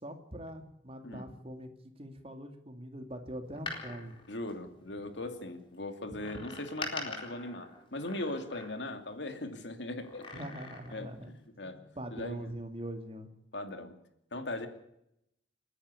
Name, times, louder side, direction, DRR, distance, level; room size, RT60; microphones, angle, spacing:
voice 1, 0.0-4.1 6.1-6.2 10.3-13.3, right 1 dB, 30° right, 6 dB, 2.6 m, -43 dB
Door, 3.4-5.3 6.2-9.1 10.0-11.1 11.5-11.6, left 3 dB, 25° left, 4.2 m, -44 dB
voice 2, 4.3-10.4 10.9-11.8 12.1-12.4 13.5-13.9 14.3-14.7, left 2 dB, 70° left, 7 dB, 2.6 m, -39 dB
29.5 x 10.5 x 8.4 m, 0.80 s
head